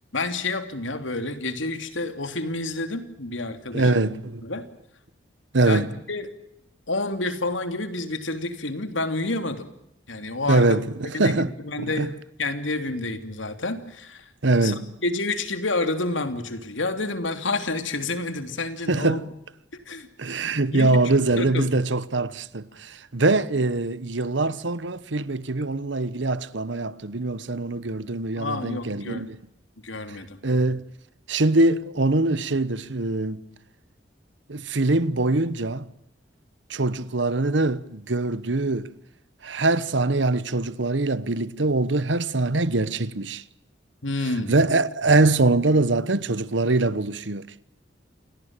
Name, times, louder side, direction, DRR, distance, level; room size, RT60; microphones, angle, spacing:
voice 1, 0.1-4.1 4.4-4.6 5.6-6.3 6.9-9.7 10.1-10.8 11.1-12.1 12.4-14.3 14.6-19.2 19.9-20.5 20.7-21.0 21.4-21.7 28.4-29.3 29.8-30.4 44.0-44.6, left 2 dB, 85° left, 3.0 m, -29 dB
voice 2, 3.7-4.4 5.5-5.9 10.5-11.5 11.8-12.1 14.4-14.9 18.9-19.2 20.2-29.4 30.4-30.8 31.3-33.4 34.5-35.8 36.7-38.9 39.4-43.4 44.5-47.5, right 2 dB, 75° right, 1.1 m, -23 dB
29.0 x 18.0 x 9.0 m
head